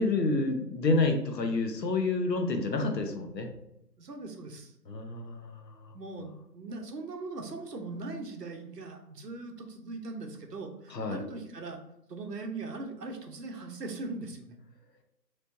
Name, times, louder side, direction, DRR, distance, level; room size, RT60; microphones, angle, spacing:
voice 1, 0.0-3.5 4.9-5.9 10.9-11.2, left 3 dB, 75° left, 4 dB, 1.1 m, -29 dB
voice 2, 4.0-4.7 5.9-11.8 12.1-14.6, right 3 dB, 70° right, 3 dB, 1.1 m, -40 dB
4.3 x 3.2 x 2.7 m, 0.80 s
figure-of-eight pair, 160°, 50 cm